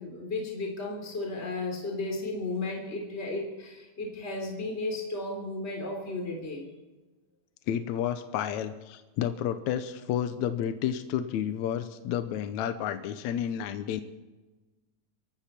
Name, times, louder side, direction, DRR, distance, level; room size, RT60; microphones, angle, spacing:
voice 1, 0.0-6.7, left 2 dB, 20° left, 1 dB, 3.4 m, -34 dB
voice 2, 7.7-14.0, left 10 dB, 80° left, 9 dB, 2.1 m, -31 dB
24.5 x 13.0 x 4.4 m, 1.2 s
omnidirectional pair, 3.3 m